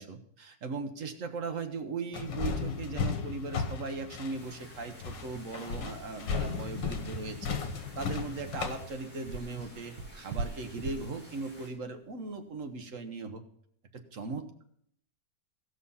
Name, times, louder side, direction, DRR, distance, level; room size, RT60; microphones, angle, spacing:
voice 1, 0.0-7.6 8.0-13.4 13.9-14.6, right 4 dB, 50° right, 6 dB, 1.3 m, -38 dB
sound 1, 2.1-8.9, left 5 dB, 80° left, 1.8 m, -35 dB
sound 2, 4.3-11.7, left 1 dB, 30° left, 6.2 m, -53 dB
sound 3, 4.4-12.8, right 4 dB, 75° right, 1.3 m, -43 dB
16.0 x 6.1 x 5.6 m, 0.67 s
omnidirectional pair, 1.9 m